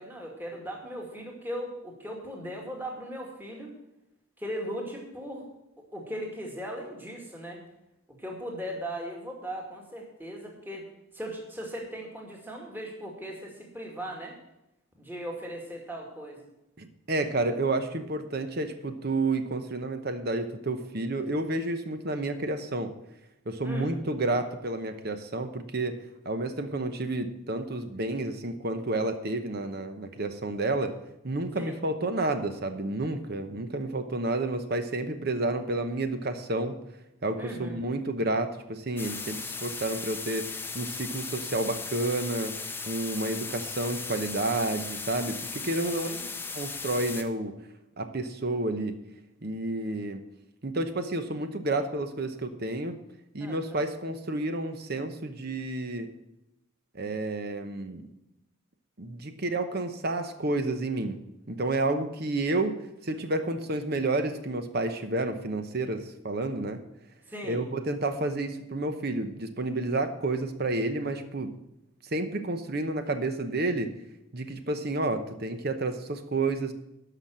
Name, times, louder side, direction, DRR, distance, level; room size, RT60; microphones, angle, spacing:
voice 1, 0.0-3.7 4.4-5.5 5.9-7.6 8.2-10.9 11.1-14.3 15.0-16.5 23.6-23.9 31.6-31.8 37.4-37.9 45.8-46.2 53.4-53.9 67.3-67.6, equal, 10° right, -1 dB, 2.1 m, -38 dB
voice 2, 16.8-22.9 23.5-31.0 31.2-36.8 37.2-42.5 42.9-46.1 46.5-47.5 48.0-49.0 49.4-50.2 50.6-53.0 53.3-56.1 56.9-58.1 59.0-61.2 61.5-66.8 67.4-71.6 72.1-73.9 74.3-76.7, right 2 dB, 50° right, 9 dB, 0.9 m, -30 dB
sound 1, 39.0-47.2, left 4 dB, 10° left, 0.7 m, -37 dB
12.0 x 5.9 x 7.4 m, 0.89 s
head